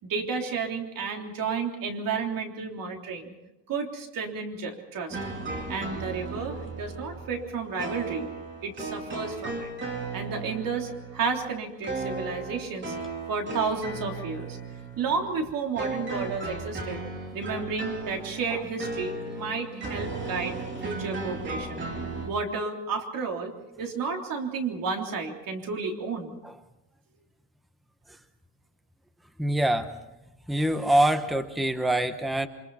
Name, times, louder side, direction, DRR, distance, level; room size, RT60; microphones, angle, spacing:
voice 1, 0.0-3.3 3.7-5.2 5.7-8.3 8.6-9.7 10.1-12.9 13.3-14.6 15.0-17.0 17.3-21.9 22.3-26.4, right 5 dB, 50° right, 2 dB, 3.6 m, -32 dB
sound 1, 5.1-22.3, right 3 dB, 25° right, 3.5 m, -36 dB
voice 2, 29.4-29.9 30.5-32.5, right 1 dB, ahead, 8 dB, 0.9 m, -24 dB
29.0 x 24.5 x 4.2 m, 0.94 s
cardioid pair, 165°, 43 cm